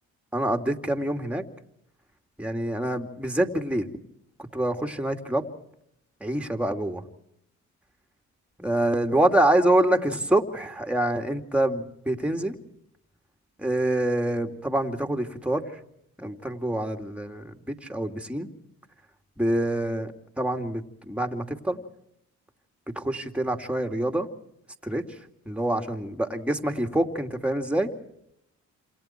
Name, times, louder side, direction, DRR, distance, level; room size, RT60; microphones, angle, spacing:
voice 1, 0.3-1.4 2.4-3.9 4.5-5.5 6.2-7.0 8.6-12.5 13.6-15.6 16.2-17.5 17.9-18.5 19.4-20.1 20.4-21.8 23.0-24.3 24.8-25.0 25.5-27.9, right 1 dB, 5° right, 4 dB, 2.7 m, -26 dB
28.0 x 27.5 x 4.6 m, 0.77 s
cardioid pair, 90°, 30 cm